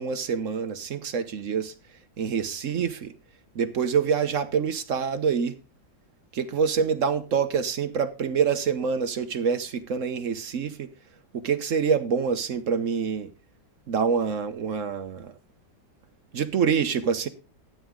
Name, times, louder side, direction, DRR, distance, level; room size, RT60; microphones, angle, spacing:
voice 1, 0.0-1.7 2.2-3.1 3.5-5.6 6.3-10.9 11.3-13.3 13.9-15.3 16.3-17.3, right 6 dB, 55° right, 1.0 m, -26 dB
12.5 x 9.3 x 3.7 m
omnidirectional pair, 1.9 m